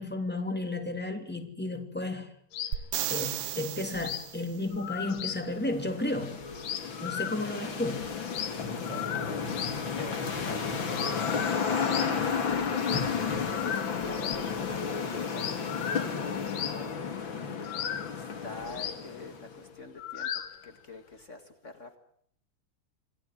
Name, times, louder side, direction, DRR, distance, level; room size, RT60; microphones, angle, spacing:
voice 1, 0.0-2.3 3.1-6.4 7.0-8.1, left 2 dB, 5° left, 1.9 m, -33 dB
sound 1, 2.5-2.9 3.1-3.3 3.6-3.7 3.9-4.3 4.7-5.5 5.8-5.9 6.1-6.2 6.4-7.7 8.0-9.9 10.2-10.5 10.9-12.2 12.8-13.1 13.4-15.0 15.3-17.0 17.6-20.7, left 10 dB, 60° left, 2.6 m, -37 dB
sound 2, 2.7-4.6 8.4-8.5, right 12 dB, 65° right, 2.1 m, -34 dB
sound 3, 5.1-19.6, left 6 dB, 35° left, 2.2 m, -32 dB
voice 2, 8.8-17.1 18.1-22.0, left 3 dB, 85° left, 0.6 m, -46 dB
27.0 x 17.5 x 9.9 m
omnidirectional pair, 4.8 m